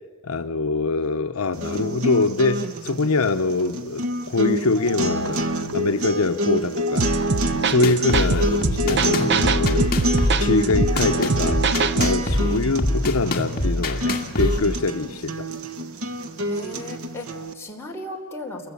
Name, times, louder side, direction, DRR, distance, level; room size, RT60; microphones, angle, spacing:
voice 1, 0.2-5.5 5.7-7.1 7.5-11.6 11.9-15.5, left 3 dB, 75° left, 0.8 m, -24 dB
sound 1, 1.5-17.5, equal, 75° right, 1.5 m, -27 dB
sound 2, 7.0-12.3, right 4 dB, 55° right, 0.8 m, -24 dB
sound 3, 7.8-14.6, left 1 dB, 45° left, 2.2 m, -25 dB
voice 2, 16.4-18.7, left 1 dB, 10° left, 3.8 m, -37 dB
29.5 x 22.0 x 8.4 m
head